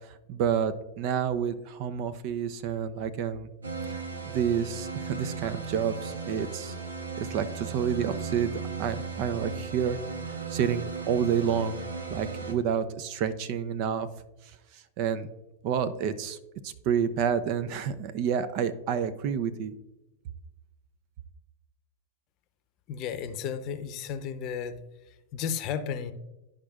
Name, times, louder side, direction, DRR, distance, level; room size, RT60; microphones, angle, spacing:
voice 1, 0.3-3.5 3.9-4.0 4.2-6.7 7.2-8.5 8.8-10.0 10.5-11.8 12.1-14.1 15.0-15.3 15.6-16.4 16.6-19.7, right 8 dB, 50° right, 11 dB, 0.6 m, -29 dB
sound 1, 3.6-12.5, right 5 dB, 85° right, 0.9 m, -36 dB
voice 2, 22.9-24.8 25.1-26.1, left 7 dB, 45° left, 10 dB, 0.7 m, -33 dB
12.0 x 5.1 x 2.4 m, 0.98 s
hypercardioid pair, 100°, 0 cm